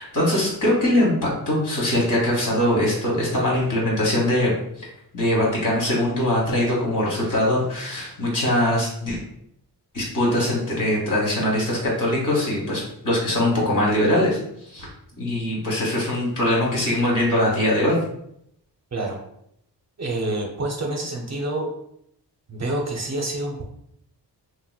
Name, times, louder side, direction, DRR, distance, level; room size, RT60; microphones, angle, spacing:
voice 1, 0.0-4.5 4.8-4.9 5.1-9.2 9.9-14.4 14.6-14.9 15.2-18.0, left 1 dB, 50° left, -4 dB, 1.4 m, -22 dB
voice 2, 20.0-21.7 22.5-23.6, right 2 dB, 40° right, 1 dB, 0.6 m, -27 dB
3.1 x 2.8 x 2.3 m, 0.74 s
cardioid pair, 85°, 42 cm